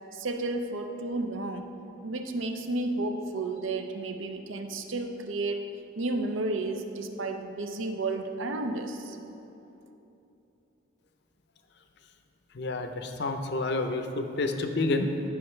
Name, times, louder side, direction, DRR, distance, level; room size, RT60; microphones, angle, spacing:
voice 1, 0.1-1.7 2.0-5.6 6.0-9.2, right 2 dB, 75° right, 6 dB, 0.6 m, -32 dB
voice 2, 12.5-15.1, left 2 dB, 55° left, 6 dB, 0.6 m, -29 dB
14.0 x 5.8 x 3.2 m, 2.9 s
head